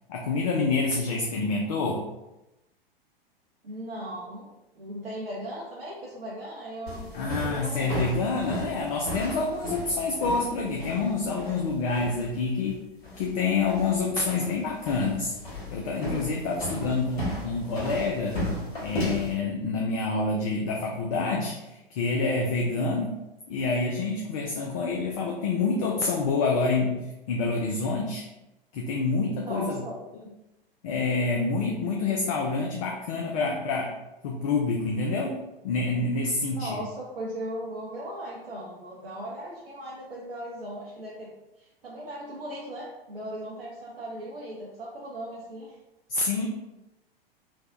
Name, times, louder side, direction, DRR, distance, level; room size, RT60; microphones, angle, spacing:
voice 1, 0.1-2.1 7.1-12.8 13.2-15.3 15.7-18.4 18.8-23.2 23.5-28.3 28.7-29.8 30.8-34.0 34.2-35.4 35.6-36.8 46.1-46.5, left 3 dB, 40° left, 0 dB, 0.4 m, -27 dB
voice 2, 3.6-4.5 4.7-8.3 9.9-10.0 16.7-16.9 29.4-30.0 36.5-41.3 41.6-45.8, right 1 dB, 75° right, -5 dB, 0.7 m, -38 dB
sound 1, 6.9-19.4, left 1 dB, 60° left, 1.4 m, -35 dB
3.3 x 2.1 x 2.4 m, 0.95 s
figure-of-eight pair, 100°, 29 cm